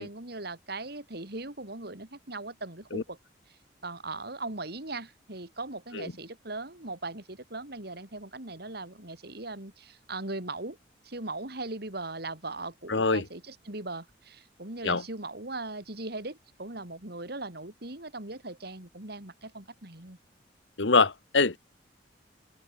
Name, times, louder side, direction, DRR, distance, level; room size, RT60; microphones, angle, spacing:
voice 1, 0.0-3.2 3.8-10.8 11.0-20.2, right 2 dB, 60° right, 3.6 m, -39 dB
voice 2, 12.9-13.2 14.8-15.0 20.8-21.6, left 4 dB, 75° left, 1.4 m, -24 dB
open air
head